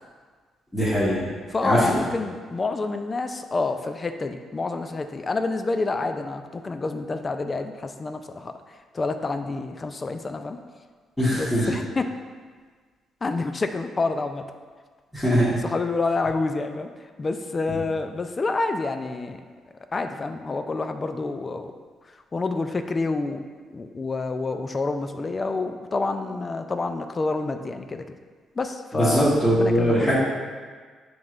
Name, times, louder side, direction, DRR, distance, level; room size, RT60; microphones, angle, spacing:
voice 1, 0.7-1.2 1.6-2.0 11.2-11.7 15.1-15.5 28.9-30.1, equal, 10° left, -12 dB, 1.3 m, -21 dB
voice 2, 1.5-8.5 8.9-10.6 11.3-12.0 13.2-14.4 15.6-16.9 17.2-19.4 19.9-21.7 22.3-23.4 23.7-28.0 28.6-30.1, left 3 dB, 30° left, 7 dB, 0.3 m, -28 dB
7.0 x 3.1 x 2.5 m, 1.5 s
cardioid pair, 90°, 0 cm